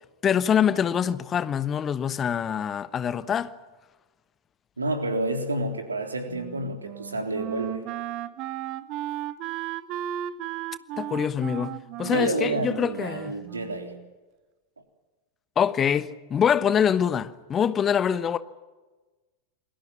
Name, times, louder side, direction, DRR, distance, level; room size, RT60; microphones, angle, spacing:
voice 1, 0.2-3.5 11.0-13.3 15.6-18.4, left 8 dB, 25° left, 1.1 m, -24 dB
voice 2, 4.8-7.8 12.0-13.9, right 2 dB, 75° right, 3.6 m, -29 dB
Wind instrument woodwind instrument, 6.3-14.1, right 13 dB, 40° right, 1.3 m, -35 dB
28.5 x 21.5 x 7.4 m
figure-of-eight pair, 90°, 0 cm